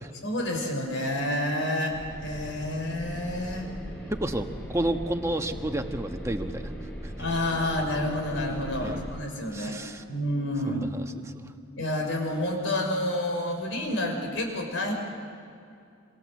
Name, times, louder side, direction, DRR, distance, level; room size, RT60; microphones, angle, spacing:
voice 1, 0.2-3.7 7.2-9.8 10.1-10.9 11.8-14.9, left 1 dB, 65° left, 2 dB, 5.9 m, -29 dB
sound 1, 1.9-9.2, equal, 10° left, 5.8 m, -39 dB
voice 2, 4.1-6.7 7.0-7.1 8.3-8.4 8.8-9.0 9.5-10.0 10.6-11.5, right 1 dB, 15° right, 5 dB, 1.3 m, -31 dB
27.5 x 26.5 x 7.7 m, 2.5 s
head